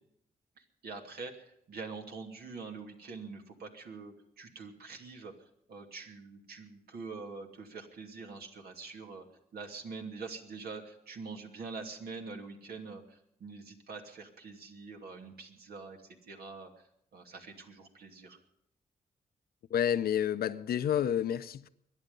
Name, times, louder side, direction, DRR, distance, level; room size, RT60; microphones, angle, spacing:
voice 1, 0.6-5.3 5.7-9.3 9.5-18.4, right 4 dB, 80° right, 2.7 m, -45 dB
voice 2, 19.7-21.7, left 9 dB, 75° left, 0.7 m, -29 dB
22.5 x 10.5 x 5.4 m
cardioid pair, 85°, 16 cm